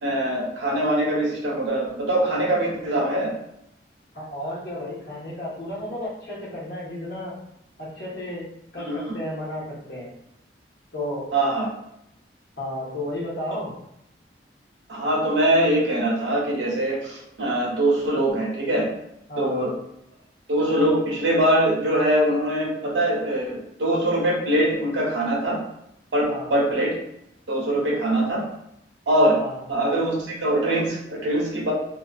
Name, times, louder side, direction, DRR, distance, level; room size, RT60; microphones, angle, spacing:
voice 1, 0.0-3.3 8.9-9.0 11.3-11.7 14.9-18.9 19.4-19.7 20.5-25.6 26.1-27.0 27.5-28.4 29.1-29.4 29.7-31.7, right 1 dB, 85° right, -2 dB, 0.7 m, -22 dB
voice 2, 4.1-7.3 7.8-8.4 8.7-10.1 10.9-11.3 12.6-13.7 19.3-19.7 26.2-26.5 29.3-29.6, left 1 dB, 60° left, -6 dB, 1.0 m, -33 dB
2.4 x 2.2 x 2.3 m, 0.79 s
head